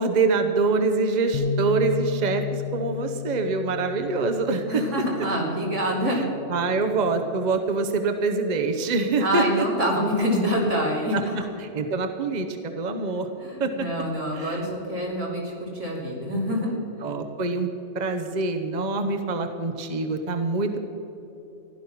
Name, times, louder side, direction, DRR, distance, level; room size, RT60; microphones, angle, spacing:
voice 1, 0.0-4.8 6.1-6.2 6.5-9.7 11.1-11.2 11.6-13.3 13.6-13.7 14.3-14.6 17.0-17.7 17.9-20.8, right 3 dB, 40° right, 6 dB, 1.0 m, -25 dB
Bass guitar, 1.3-7.6, left 7 dB, 60° left, 0.7 m, -34 dB
voice 2, 4.7-6.2 9.2-11.4 13.4-16.8, equal, 80° right, -3 dB, 3.6 m, -26 dB
15.5 x 11.5 x 5.9 m, 3.0 s
omnidirectional pair, 1.2 m